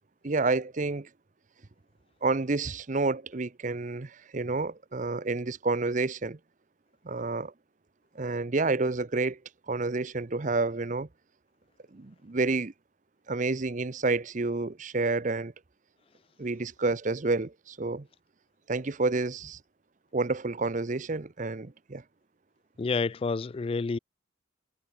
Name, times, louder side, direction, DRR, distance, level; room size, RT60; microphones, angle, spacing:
voice 1, 0.2-1.1 2.2-6.4 7.0-7.5 8.1-9.4 9.7-11.1 11.9-12.7 13.3-15.5 16.4-18.1 18.7-19.6 20.1-22.0, right 3 dB, 40° right, 0.7 m, -29 dB
voice 2, 22.8-24.0, left 4 dB, 30° left, 0.3 m, -29 dB
head